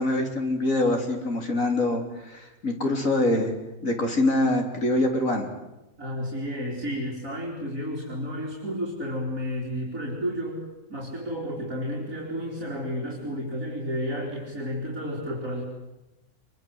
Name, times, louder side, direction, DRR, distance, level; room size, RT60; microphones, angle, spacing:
voice 1, 0.0-3.5 3.8-5.5, left 1 dB, 60° left, 3 dB, 4.2 m, -24 dB
voice 2, 6.0-15.6, equal, 60° right, -3 dB, 4.4 m, -32 dB
26.5 x 23.5 x 8.0 m, 0.98 s
omnidirectional pair, 1.6 m